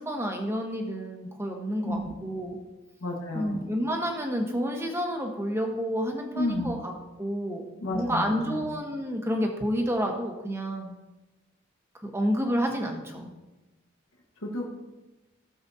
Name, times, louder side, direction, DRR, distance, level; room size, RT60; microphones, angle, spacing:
voice 1, 0.0-2.6 3.3-6.9 7.2-7.6 7.9-10.9 12.0-13.3, equal, 10° right, 2 dB, 1.2 m, -29 dB
voice 2, 1.8-2.1 3.0-3.7 6.3-6.7 7.8-8.6 14.4-14.7, left 1 dB, 85° left, -1 dB, 1.6 m, -31 dB
16.0 x 6.9 x 2.8 m, 1.0 s
head